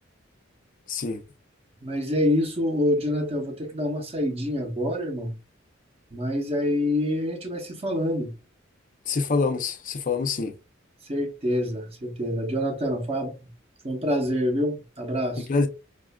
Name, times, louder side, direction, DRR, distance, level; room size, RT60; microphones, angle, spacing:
voice 1, 0.9-1.2 9.1-10.5 15.4-15.7, left 4 dB, 45° left, 0.5 m, -25 dB
voice 2, 1.8-5.4 6.1-8.3 11.1-13.5 13.8-15.5, left 1 dB, 30° right, 0.7 m, -26 dB
5.0 x 2.4 x 2.2 m
head